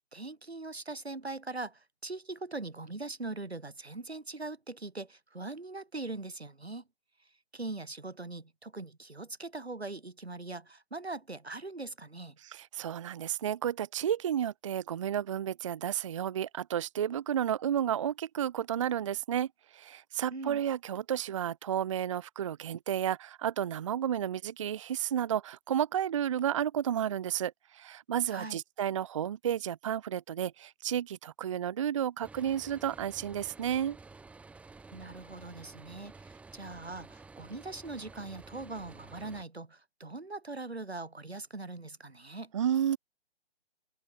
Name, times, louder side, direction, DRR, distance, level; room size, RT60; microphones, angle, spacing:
voice 1, 0.0-6.8 7.5-12.4 20.3-20.6 28.3-28.6 34.9-42.5, right 3 dB, 85° right, 3.9 m, -41 dB
voice 2, 12.4-19.5 19.7-34.0 42.5-43.0, right 9 dB, 30° right, 0.6 m, -32 dB
sound 1, 32.2-39.4, right 3 dB, 5° right, 2.0 m, -52 dB
figure-of-eight pair, 140°, 31 cm